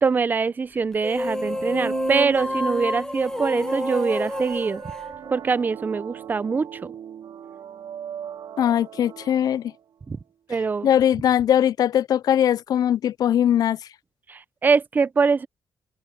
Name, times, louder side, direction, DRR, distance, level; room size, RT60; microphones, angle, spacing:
voice 1, 0.0-4.8 5.3-6.8 10.1-10.2 10.5-10.9 14.3-15.5, right 5 dB, 25° right, 0.5 m, -23 dB
sound 1, 0.9-5.7, left 1 dB, 10° left, 1.5 m, -29 dB
sound 2, 1.2-9.8, right 9 dB, 75° right, 3.0 m, -37 dB
voice 2, 8.6-9.7 10.8-13.8, left 10 dB, 60° left, 0.3 m, -20 dB
wide cardioid pair, 150°, 7 cm